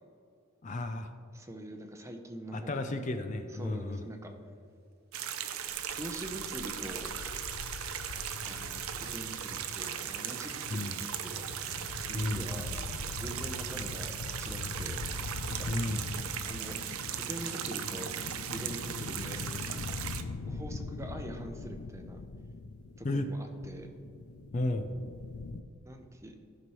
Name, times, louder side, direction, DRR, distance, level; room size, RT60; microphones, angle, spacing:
voice 1, 0.6-1.1 2.5-4.0 10.7-11.0 12.1-12.5 15.7-16.0 23.0-23.3 24.5-24.9, left 2 dB, 35° left, 7 dB, 0.4 m, -33 dB
voice 2, 1.3-3.0 3.5-4.3 6.0-7.1 8.4-11.5 12.1-12.7 13.2-15.1 15.5-15.7 16.4-16.8 17.1-18.1 18.5-19.4 20.5-22.2 23.0-23.9 25.9-26.4, right 1 dB, 15° right, 4 dB, 0.7 m, -44 dB
sound 1, 5.1-20.2, right 9 dB, 85° right, 0.6 m, -38 dB
sound 2, 5.7-25.6, left 3 dB, 90° left, 0.5 m, -42 dB
sound 3, 8.1-8.3 9.0-9.2 9.8-10.0 10.6-13.5 13.7-17.6, right 6 dB, 50° right, 0.7 m, -52 dB
14.5 x 6.0 x 3.1 m, 2.3 s
head